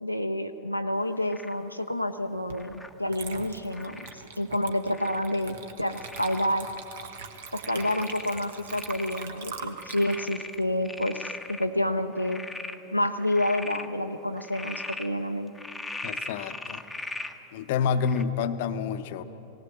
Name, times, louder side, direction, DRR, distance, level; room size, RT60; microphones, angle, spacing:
voice 1, 0.0-4.0 4.4-6.7 7.5-12.4 12.9-15.5, left 1 dB, 90° left, 5 dB, 0.6 m, -29 dB
Frog, 1.3-1.6 2.5-2.9 3.7-4.1 4.9-5.4 5.9-6.5 6.9-7.0 7.6-9.3 9.6-11.6 12.1-12.8 13.2-13.9 14.4-15.1 15.5-17.3 18.0-18.2, left 2 dB, 5° left, 1.0 m, -39 dB
Water / Liquid, 2.5-2.7 3.1-11.6, right 6 dB, 55° right, 1.3 m, -43 dB
voice 2, 16.0-16.8 17.5-19.2, left 6 dB, 50° left, 10 dB, 0.8 m, -28 dB
18.5 x 18.5 x 7.6 m, 3.0 s
figure-of-eight pair, 90°, 0 cm